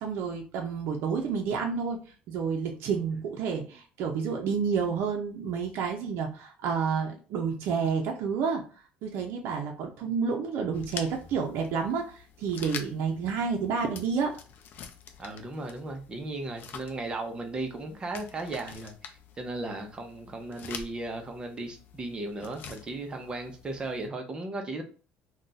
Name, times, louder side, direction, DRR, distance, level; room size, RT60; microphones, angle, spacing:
voice 1, 0.0-8.6 9.0-14.3, right 6 dB, 70° right, 2 dB, 0.6 m, -30 dB
sound 1, 10.7-24.1, left 6 dB, 55° left, 0.5 m, -46 dB
voice 2, 15.2-24.8, right 2 dB, 20° right, 4 dB, 0.7 m, -36 dB
2.5 x 2.3 x 3.9 m, 0.37 s
cardioid pair, 145°, 4 cm